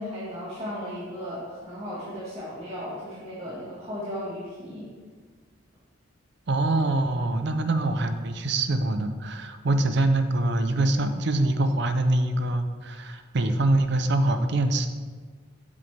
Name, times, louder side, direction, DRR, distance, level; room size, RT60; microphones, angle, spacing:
voice 1, 0.0-4.9, equal, 30° right, -9 dB, 1.8 m, -35 dB
voice 2, 6.5-14.9, right 2 dB, 60° right, 8 dB, 0.6 m, -24 dB
7.9 x 7.3 x 3.4 m, 1.5 s
head